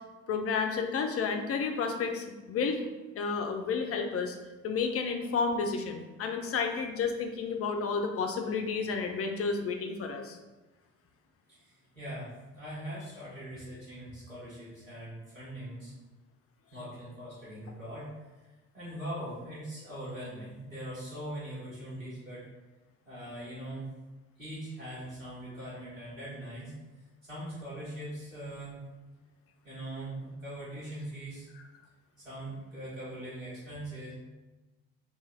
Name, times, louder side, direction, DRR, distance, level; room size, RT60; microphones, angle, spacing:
voice 1, 0.3-2.9 3.2-4.4 4.6-10.4, left 5 dB, 35° left, 4 dB, 0.6 m, -31 dB
voice 2, 11.5-15.9 16.7-18.1 18.7-22.5 23.0-23.9 24.4-28.8 29.6-31.5 32.2-34.1, right 1 dB, 90° right, -9 dB, 1.2 m, -41 dB
3.2 x 2.9 x 3.5 m, 1.2 s
figure-of-eight pair, 45°, 38 cm